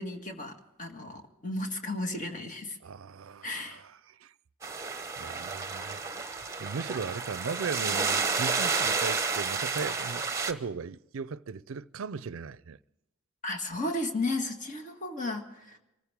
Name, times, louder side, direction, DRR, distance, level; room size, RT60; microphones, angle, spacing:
voice 1, 0.0-2.8 3.4-3.8 13.4-15.8, left 2 dB, 40° left, 1.8 m, -34 dB
voice 2, 2.8-4.3 4.7-6.2 6.6-12.8, right 5 dB, 80° right, 0.5 m, -38 dB
sound 1, 4.6-10.5, right 4 dB, 15° right, 1.1 m, -31 dB
25.0 x 14.5 x 3.6 m
head